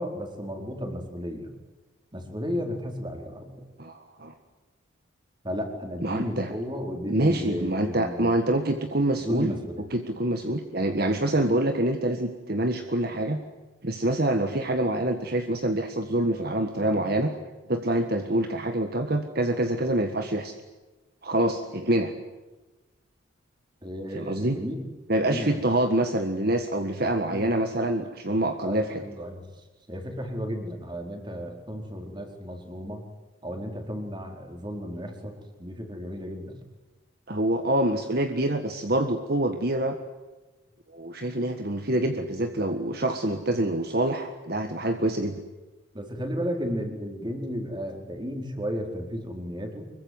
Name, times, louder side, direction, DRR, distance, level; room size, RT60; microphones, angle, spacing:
voice 1, 0.0-1.5 2.1-3.6 5.4-8.5 9.2-9.9 23.8-24.8 25.2-25.9 27.0-27.5 28.6-29.5 29.9-33.0 33.4-36.6 45.9-49.8, equal, 20° right, 4 dB, 4.4 m, -34 dB
voice 2, 3.8-4.3 6.0-6.5 7.1-9.5 9.9-13.4 13.8-17.3 17.7-20.5 21.2-22.1 24.1-24.6 25.1-29.0 37.3-40.0 40.9-45.4, right 1 dB, 50° right, 6 dB, 1.7 m, -26 dB
25.0 x 22.5 x 9.5 m, 1.2 s
head